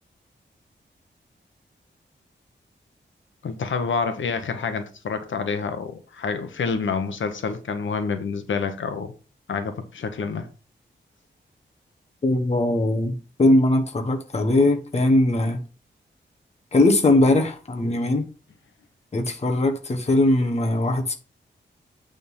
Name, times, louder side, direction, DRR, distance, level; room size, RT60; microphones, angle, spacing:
voice 1, 3.4-9.1 9.5-10.5, left 5 dB, 85° left, 1.1 m, -28 dB
voice 2, 12.2-15.6 16.7-18.2 19.1-21.1, left 2 dB, 35° left, 1.3 m, -20 dB
8.8 x 3.8 x 5.6 m
wide cardioid pair, 160°, 19 cm